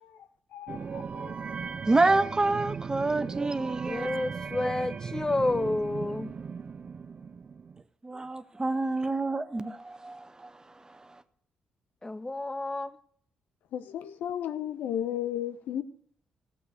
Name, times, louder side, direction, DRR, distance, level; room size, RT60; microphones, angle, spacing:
voice 1, 0.5-1.4 13.7-15.8, left 10 dB, 70° left, 0.7 m, -34 dB
sound 1, 0.7-7.8, right 5 dB, 45° right, 0.5 m, -37 dB
voice 2, 1.9-4.1 4.6-4.7 8.0-11.2, right 2 dB, 25° right, 1.0 m, -28 dB
voice 3, 3.8-6.3 12.0-12.9, left 2 dB, 20° left, 0.9 m, -30 dB
15.0 x 8.1 x 6.5 m
hypercardioid pair, 45°, 3 cm